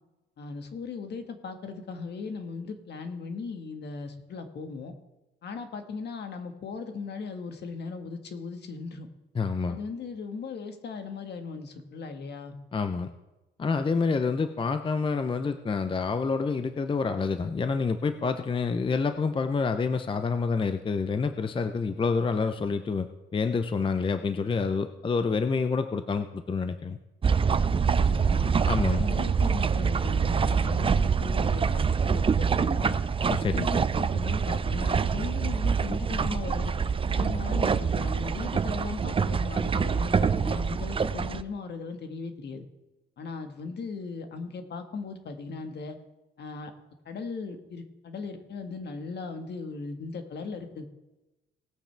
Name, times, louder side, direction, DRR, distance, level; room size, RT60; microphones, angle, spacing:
voice 1, 0.4-4.9 5.4-9.1 9.7-12.6 27.8-33.0 33.5-36.7 37.2-42.7 43.2-46.0 46.4-46.7 47.0-50.9, left 4 dB, 60° left, 6 dB, 1.6 m, -38 dB
voice 2, 9.3-9.8 12.7-13.1 13.6-27.0 28.6-29.0 33.3-33.7, left 4 dB, 25° left, 9 dB, 0.6 m, -28 dB
sound 1, 27.2-41.4, right 6 dB, 25° right, 0.5 m, -25 dB
sound 2, 30.8-38.7, left 2 dB, 75° left, 4.0 m, -54 dB
19.0 x 8.8 x 3.4 m, 1.0 s
cardioid pair, 90°, 20 cm